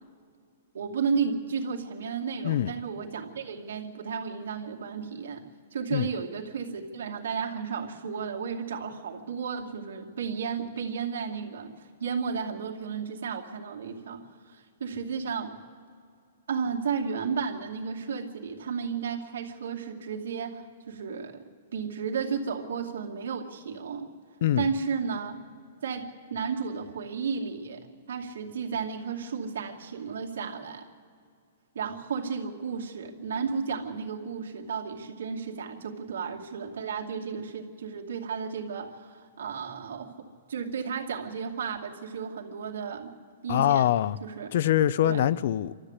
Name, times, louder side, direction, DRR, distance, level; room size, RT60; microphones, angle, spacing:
voice 1, 0.7-5.4 5.7-15.6 16.5-21.4 21.7-24.1 24.6-25.3 25.8-27.8 28.1-30.8 31.7-40.1 40.5-43.1 43.4-43.9 44.2-44.5 45.0-45.2, right 6 dB, 85° right, 2.4 m, -33 dB
voice 2, 43.5-44.2 44.5-45.7, left 12 dB, 50° left, 0.4 m, -24 dB
28.5 x 13.0 x 8.2 m
hypercardioid pair, 170°, 0 cm